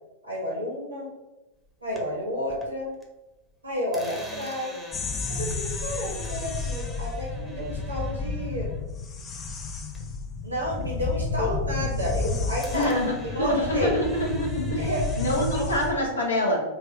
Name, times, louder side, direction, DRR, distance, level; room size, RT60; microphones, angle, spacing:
voice 1, 0.2-1.1 1.8-2.9 3.6-4.8 5.3-8.7 10.4-12.9 13.2-14.0 14.8-15.0 15.5-15.7, left 1 dB, 80° right, -5 dB, 1.2 m, -31 dB
sound 1, 1.6-3.1 3.4-10.3 10.6-12.2 12.6-16.1, right 1 dB, 5° left, 0.9 m, -46 dB
sound 2, 4.9-15.9, left 3 dB, 25° left, 0.5 m, -31 dB
voice 2, 12.7-13.1 13.4-14.8 15.2-16.6, left 1 dB, 75° left, -2 dB, 1.2 m, -25 dB
3.9 x 2.5 x 4.2 m, 1.0 s
figure-of-eight pair, 90°, 0 cm